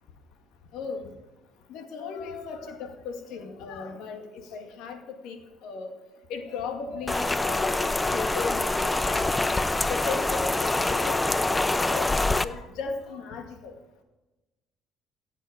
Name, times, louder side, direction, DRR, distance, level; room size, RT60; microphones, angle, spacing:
voice 1, 0.7-1.1 1.7-4.3 4.5-5.0 5.2-5.9 6.3-9.3 9.8-13.7, left 5 dB, 75° left, 5 dB, 2.2 m, -36 dB
Rain, 7.1-12.5, left 2 dB, 15° left, 0.7 m, -25 dB
16.5 x 8.4 x 5.1 m, 1.1 s
supercardioid pair, 75°, 0 cm